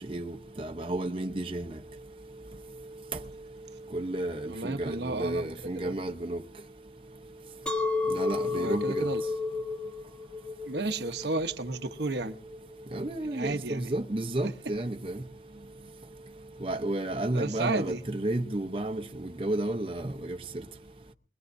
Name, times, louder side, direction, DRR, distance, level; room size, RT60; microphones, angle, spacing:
voice 1, 0.0-1.7 3.9-6.4 8.1-9.1 12.9-15.2 16.6-20.4, right 1 dB, 30° right, 0.8 m, -32 dB
voice 2, 4.5-5.9 8.5-9.2 10.6-12.4 13.2-13.9 14.4-14.5 17.3-18.0, right 2 dB, 70° right, 1.0 m, -33 dB
Chink clink, 7.7-12.8, left 3 dB, 5° left, 1.2 m, -32 dB
22.5 x 21.0 x 2.6 m
head